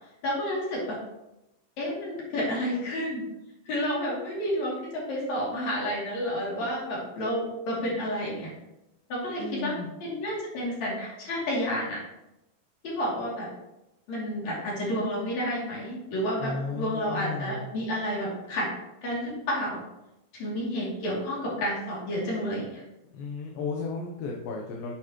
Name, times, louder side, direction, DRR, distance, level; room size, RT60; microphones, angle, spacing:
voice 1, 0.2-1.0 1.8-3.2 3.7-8.5 9.1-12.0 12.8-13.5 14.1-18.7 19.0-19.8 20.3-22.8, equal, 50° left, -5 dB, 3.8 m, -30 dB
voice 2, 9.4-9.9 16.4-17.7 23.1-24.9, left 4 dB, 75° left, 0 dB, 2.5 m, -34 dB
9.3 x 6.6 x 3.0 m, 0.92 s
omnidirectional pair, 4.2 m